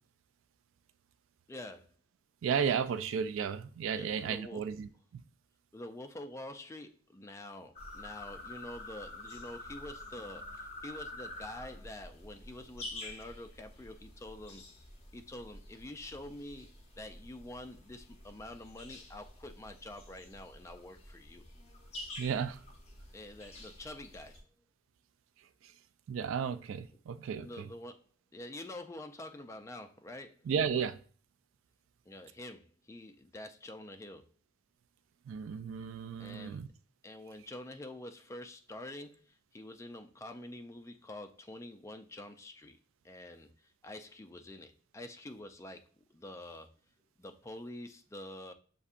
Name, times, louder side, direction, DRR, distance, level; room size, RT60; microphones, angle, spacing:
voice 1, 1.5-1.9 3.9-4.6 5.7-14.6 15.1-16.7 17.0-21.4 23.1-24.4 27.3-28.1 28.3-30.5 32.1-34.3 36.2-36.6 37.0-42.8 43.0-46.7 47.2-48.5, left 1 dB, 15° left, 6 dB, 0.3 m, -47 dB
voice 2, 2.4-5.2 22.2-22.6 25.6-25.7 26.1-27.7 30.5-31.0 35.3-36.7, right 7 dB, 75° right, 13 dB, 0.3 m, -34 dB
sound 1, 7.8-24.4, left 2 dB, 30° left, 0.9 m, -48 dB
6.7 x 2.6 x 2.5 m, 0.42 s
head